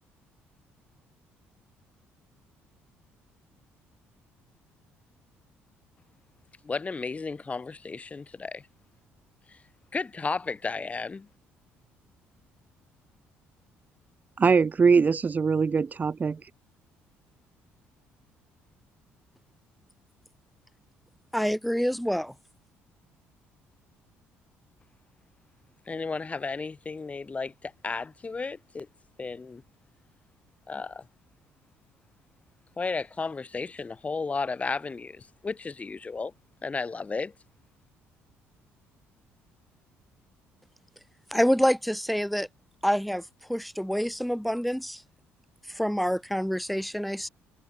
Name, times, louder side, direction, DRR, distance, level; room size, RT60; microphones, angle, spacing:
voice 1, 6.6-8.6 9.5-9.6 9.9-11.3 25.9-28.9 29.2-29.6 30.7-31.0 32.8-36.3 36.6-37.3, left 4 dB, 25° left, 2.8 m, -33 dB
voice 2, 14.4-16.5, right 5 dB, 35° right, 2.0 m, -22 dB
voice 3, 21.3-22.3 41.3-42.5 42.8-43.2 43.5-45.0 45.7-47.3, equal, ahead, 1.6 m, -26 dB
supercardioid pair, 80°, 5 cm